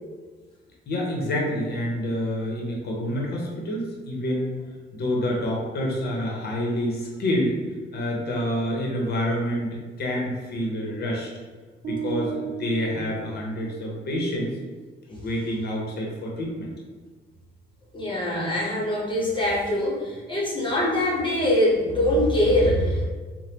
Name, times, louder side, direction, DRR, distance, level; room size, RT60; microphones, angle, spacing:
voice 1, 0.9-4.6 4.9-7.6 7.9-11.3 11.8-14.5 15.1-16.7, equal, 55° left, -2 dB, 0.8 m, -27 dB
sound 1, 11.8-14.0, right 7 dB, 50° right, 0.4 m, -34 dB
voice 2, 17.9-23.1, left 1 dB, 25° left, -5 dB, 1.0 m, -23 dB
3.3 x 2.2 x 2.9 m, 1.4 s
cardioid pair, 90°, 20 cm